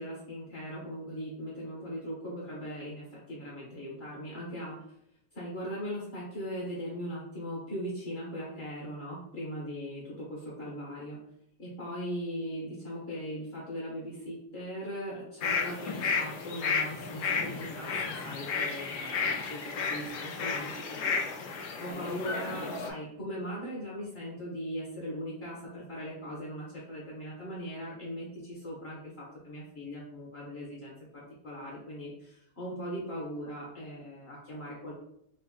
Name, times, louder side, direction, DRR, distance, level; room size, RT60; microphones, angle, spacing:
voice 1, 0.0-4.8 5.3-11.2 11.6-21.5 21.8-34.9, equal, 50° left, -5 dB, 0.7 m, -39 dB
sound 1, 15.4-22.9, left 5 dB, 75° left, 1.2 m, -33 dB
4.0 x 2.1 x 3.5 m, 0.74 s
omnidirectional pair, 2.3 m